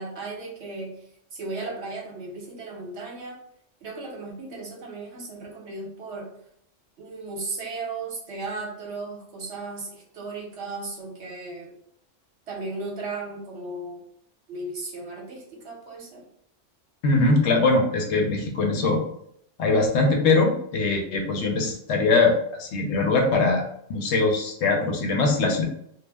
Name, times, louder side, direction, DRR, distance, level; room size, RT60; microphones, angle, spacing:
voice 1, 0.0-3.3 3.8-6.3 7.0-11.7 12.5-14.1 14.5-16.2, right 3 dB, 65° right, -1 dB, 1.0 m, -36 dB
voice 2, 17.0-19.0 19.6-22.3 22.6-23.6 23.9-25.7, left 3 dB, 70° left, 2 dB, 0.9 m, -21 dB
2.3 x 2.0 x 3.3 m, 0.70 s
omnidirectional pair, 1.3 m